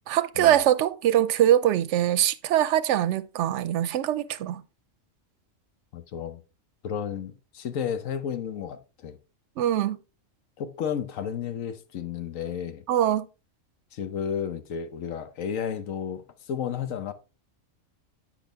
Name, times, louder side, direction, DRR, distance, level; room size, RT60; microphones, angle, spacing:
voice 1, 0.1-4.6 9.6-10.0 12.9-13.3, right 11 dB, 70° right, 0.8 m, -23 dB
voice 2, 5.9-6.4 6.8-9.2 10.6-12.8 13.9-17.1, left 8 dB, 80° left, 1.2 m, -32 dB
8.6 x 6.1 x 3.4 m
omnidirectional pair, 1.4 m